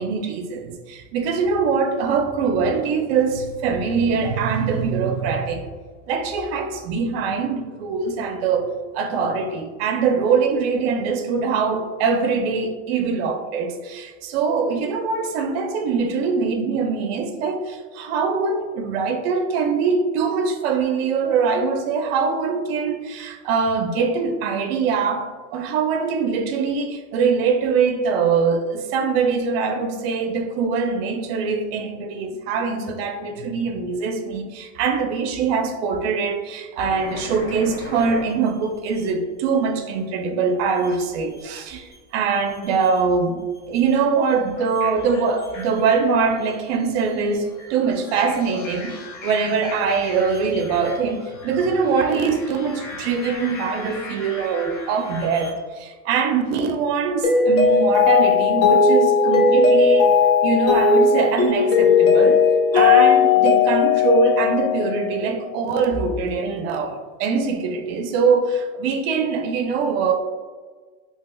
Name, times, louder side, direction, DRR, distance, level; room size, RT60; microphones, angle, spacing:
voice 1, 0.0-5.7 6.1-8.7 8.9-49.0 49.2-60.1 60.4-62.4 62.7-70.1, right 5 dB, 55° right, 0.5 m, -23 dB
sound 1, 36.8-39.1 40.7-42.0 42.3-43.1 43.5-55.5, left 2 dB, 85° left, 1.0 m, -39 dB
Mallet percussion, 57.2-65.4, left 5 dB, 40° left, 0.6 m, -16 dB
3.4 x 2.8 x 2.2 m
supercardioid pair, 130°, 36 cm